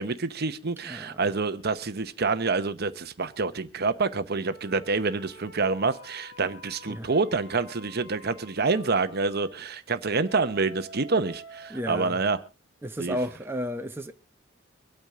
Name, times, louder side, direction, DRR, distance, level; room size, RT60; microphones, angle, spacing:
voice 1, 0.0-12.4 13.0-13.2, right 4 dB, 55° right, 0.9 m, -27 dB
voice 2, 0.8-1.3 6.9-7.1 11.7-12.2 12.8-14.1, equal, 10° right, 0.8 m, -33 dB
sound 1, 4.5-9.5 10.2-12.3, equal, 85° left, 4.1 m, -48 dB
24.5 x 8.8 x 3.7 m
head